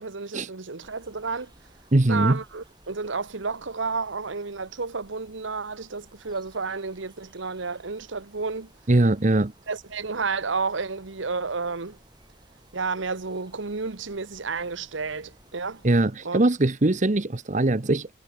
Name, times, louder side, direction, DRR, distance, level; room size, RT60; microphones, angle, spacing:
voice 1, 0.0-1.5 2.1-8.7 9.7-12.0 12.7-15.8 16.2-16.4, right 4 dB, 75° right, 1.2 m, -31 dB
sound 1, 0.8-15.9, right 1 dB, 25° right, 6.2 m, -57 dB
voice 2, 1.9-2.4 8.9-9.5 15.8-18.1, right 2 dB, 40° right, 0.9 m, -21 dB
head